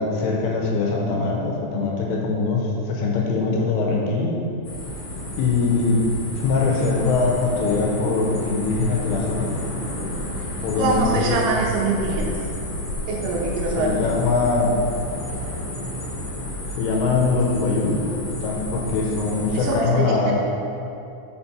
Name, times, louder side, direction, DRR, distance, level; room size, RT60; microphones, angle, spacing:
voice 1, 0.0-4.4 5.4-6.0 6.3-9.5 10.6-11.4 13.8-14.7 16.8-18.0 18.4-20.3, left 4 dB, 90° left, -1 dB, 3.3 m, -22 dB
sound 1, 4.6-19.8, left 1 dB, 60° left, 1.7 m, -31 dB
voice 2, 10.8-12.4 13.1-13.9 19.5-20.3, right 3 dB, 85° right, -1 dB, 3.2 m, -24 dB
7.0 x 5.3 x 4.2 m, 2.7 s
omnidirectional pair, 5.7 m